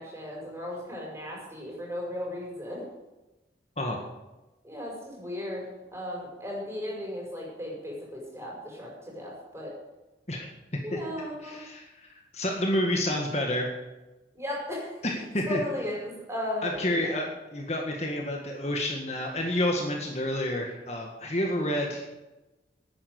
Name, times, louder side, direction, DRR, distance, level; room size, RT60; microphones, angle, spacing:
voice 1, 0.0-2.8 4.6-9.7 10.8-11.6 14.3-14.9 15.5-17.2, left 1 dB, 15° right, -2 dB, 5.5 m, -36 dB
voice 2, 11.4-13.7 15.0-15.6 16.6-22.0, left 1 dB, 40° left, 1 dB, 1.8 m, -29 dB
11.5 x 9.8 x 8.1 m, 1.0 s
head